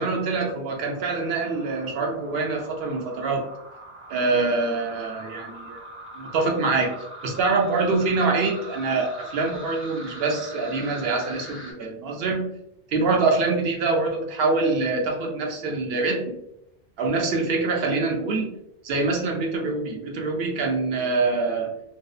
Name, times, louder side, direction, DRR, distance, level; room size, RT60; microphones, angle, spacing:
voice 1, 0.0-3.5 4.1-5.8 6.1-7.0 7.2-12.5 12.9-16.3 17.0-18.5 18.8-21.7, right 3 dB, 75° right, 1 dB, 0.8 m, -25 dB
sound 1, 0.8-11.7, right 1 dB, 20° right, 0.3 m, -42 dB
2.6 x 2.0 x 2.3 m, 0.79 s
omnidirectional pair, 1.0 m